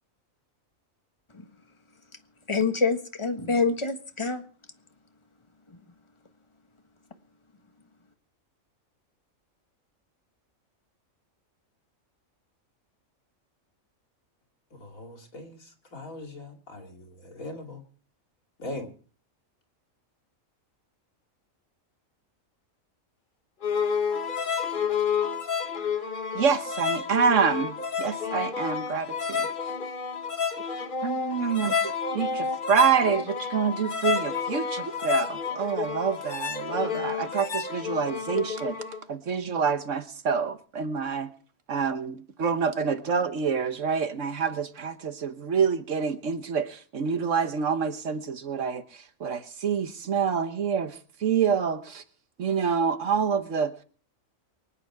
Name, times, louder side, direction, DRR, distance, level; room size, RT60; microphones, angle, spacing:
voice 1, 2.5-4.4 5.7-5.8, left 4 dB, 20° left, 1.4 m, -26 dB
voice 2, 14.7-17.8 18.6-18.9, left 1 dB, 85° left, 3.0 m, -40 dB
sound 1, 23.6-39.0, left 6 dB, 40° left, 1.1 m, -30 dB
voice 3, 26.3-29.5 30.7-38.8 39.1-41.3 41.7-52.0 52.4-53.7, right 6 dB, 65° right, 1.4 m, -27 dB
24.5 x 9.0 x 4.8 m
omnidirectional pair, 1.4 m